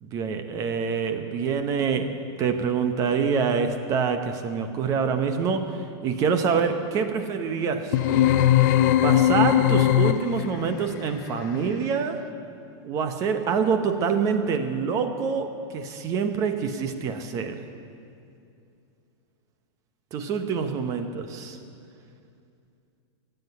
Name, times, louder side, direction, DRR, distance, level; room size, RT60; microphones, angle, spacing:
voice 1, 0.0-2.1 2.4-8.3 9.0-12.2 12.8-17.6 20.1-21.6, right 6 dB, 25° right, 8 dB, 0.8 m, -26 dB
sound 1, 7.9-10.6, left 12 dB, 40° left, 0.5 m, -19 dB
16.0 x 7.9 x 9.4 m, 2.5 s
supercardioid pair, 170°, 15 cm